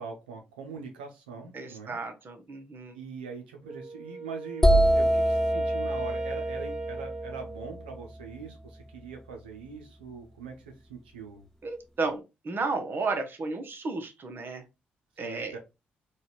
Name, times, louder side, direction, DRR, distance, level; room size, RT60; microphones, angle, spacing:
voice 1, 0.0-2.0 2.9-11.5 15.2-15.6, right 5 dB, 85° right, 3 dB, 0.7 m, -42 dB
voice 2, 1.5-2.9 11.6-14.6 15.2-15.5, right 3 dB, 45° right, 5 dB, 0.9 m, -33 dB
Wind instrument woodwind instrument, 3.6-8.0, right 3 dB, 15° right, 1.1 m, -38 dB
sound 1, 4.6-8.4, right 1 dB, 10° left, 0.5 m, -25 dB
3.9 x 2.4 x 3.0 m, 0.26 s
hypercardioid pair, 40°, 5 cm